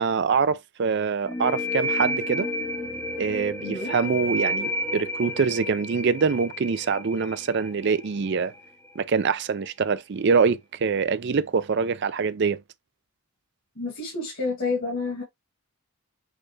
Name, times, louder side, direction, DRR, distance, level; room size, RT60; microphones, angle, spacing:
voice 1, 0.0-2.5 3.2-8.5 9.0-12.6, right 5 dB, 50° right, 0.4 m, -24 dB
sound 1, 1.3-8.7, left 1 dB, 10° left, 0.8 m, -31 dB
voice 2, 3.6-3.9 13.8-15.2, left 3 dB, 55° left, 1.9 m, -29 dB
6.3 x 2.4 x 3.2 m
head